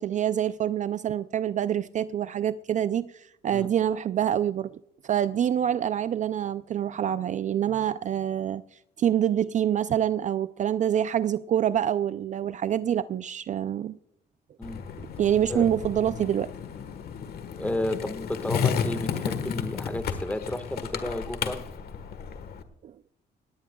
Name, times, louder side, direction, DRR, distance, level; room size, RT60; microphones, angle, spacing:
voice 1, 0.0-4.7 5.0-14.0 15.0-16.5 22.8-22.9, right 10 dB, 45° right, 0.4 m, -26 dB
Skateboard, 14.6-22.6, left 7 dB, 60° left, 1.3 m, -33 dB
voice 2, 17.5-21.6, left 1 dB, 10° left, 1.4 m, -32 dB
18.0 x 17.0 x 2.3 m
cardioid pair, 100°, 18 cm